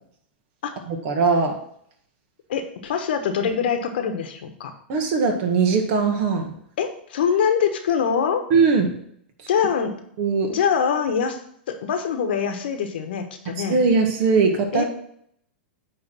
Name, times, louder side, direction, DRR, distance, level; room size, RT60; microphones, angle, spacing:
voice 1, 0.9-1.6 4.9-6.5 8.5-8.9 10.2-10.5 13.7-14.8, right 4 dB, 50° right, 3 dB, 1.7 m, -20 dB
voice 2, 2.5-4.7 6.8-8.4 9.5-9.9 10.5-11.4 11.7-13.8 14.7-14.8, left 7 dB, 70° left, 6 dB, 1.2 m, -24 dB
9.2 x 3.4 x 6.1 m, 0.68 s
hypercardioid pair, 105°, 6 cm